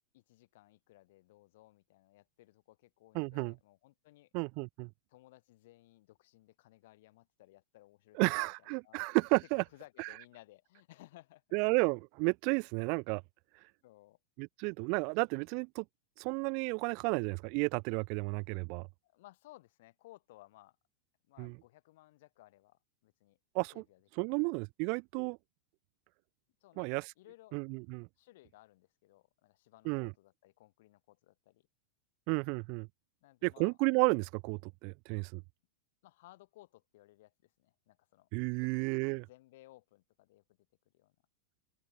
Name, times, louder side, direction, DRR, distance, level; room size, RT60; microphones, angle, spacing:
voice 1, 0.0-4.3 5.1-9.0 9.4-11.6 13.8-14.2 19.0-20.8 21.3-23.4 23.7-24.5 26.6-27.6 28.2-31.7 33.2-33.8 36.0-38.3 38.6-40.4 40.9-41.2, left 17 dB, 55° left, 7.5 m, -60 dB
voice 2, 3.1-3.5 4.3-4.9 8.2-9.6 11.5-13.2 14.4-15.8 16.2-18.9 21.4-21.5 23.5-23.7 24.2-25.4 26.8-27.0 27.5-28.1 29.9-30.1 32.3-32.9 33.4-35.4 38.3-39.2, right 37 dB, 45° right, 0.4 m, -32 dB
open air
figure-of-eight pair, 90°, 0 cm